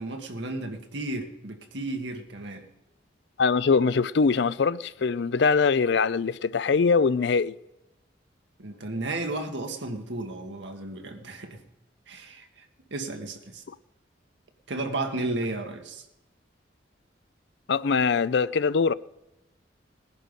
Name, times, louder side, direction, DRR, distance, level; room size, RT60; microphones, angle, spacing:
voice 1, 0.0-2.7 8.6-11.6 12.1-12.6 12.9-13.6 14.7-16.0, right 2 dB, 70° right, 1.7 m, -33 dB
voice 2, 3.4-7.5 17.7-18.9, left 5 dB, 65° left, 0.4 m, -22 dB
19.5 x 10.5 x 5.3 m
head